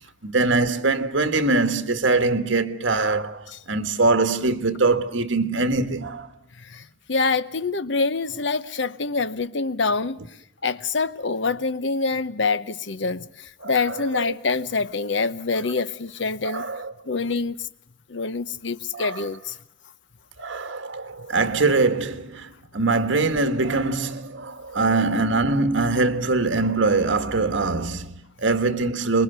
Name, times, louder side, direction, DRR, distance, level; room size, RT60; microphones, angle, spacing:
voice 1, 0.2-6.3 13.6-14.3 15.6-15.7 16.4-16.9 18.9-19.3 20.4-29.2, right 3 dB, 80° right, 1.7 m, -23 dB
voice 2, 6.6-10.2 10.6-16.7 17.1-17.6 18.1-19.6, left 4 dB, 70° left, 0.9 m, -26 dB
24.5 x 22.0 x 6.8 m
head